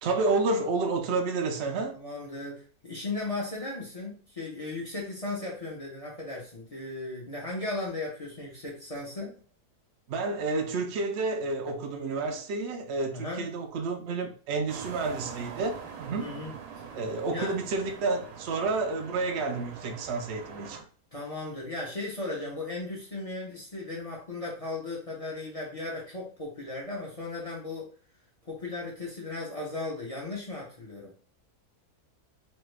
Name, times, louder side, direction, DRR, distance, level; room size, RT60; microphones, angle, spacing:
voice 1, 0.0-2.0 10.1-16.3 16.9-20.8, right 3 dB, 65° right, 0.6 m, -30 dB
voice 2, 1.9-9.4 13.1-13.5 16.2-16.5 17.3-17.5 21.1-27.9 28.4-31.1, left 2 dB, 35° left, 0.6 m, -36 dB
sound 1, 14.7-20.8, right 6 dB, 85° right, 1.2 m, -43 dB
3.2 x 2.3 x 3.2 m
omnidirectional pair, 1.7 m